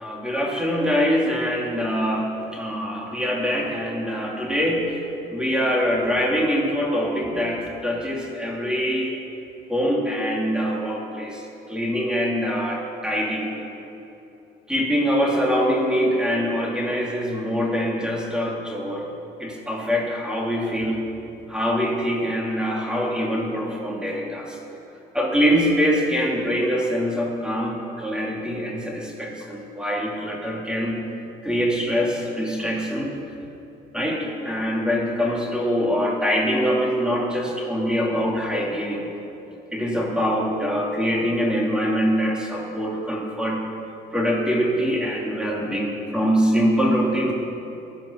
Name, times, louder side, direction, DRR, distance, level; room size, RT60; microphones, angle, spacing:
voice 1, 0.0-5.0 5.3-9.1 9.7-11.4 11.7-13.5 14.7-19.1 19.4-21.0 21.5-24.6 25.1-31.0 31.4-33.1 33.9-39.0 39.7-43.6 44.1-47.3, equal, 5° right, -2 dB, 2.5 m, -24 dB
17.0 x 11.0 x 5.6 m, 3.0 s
cardioid pair, 110°, 17 cm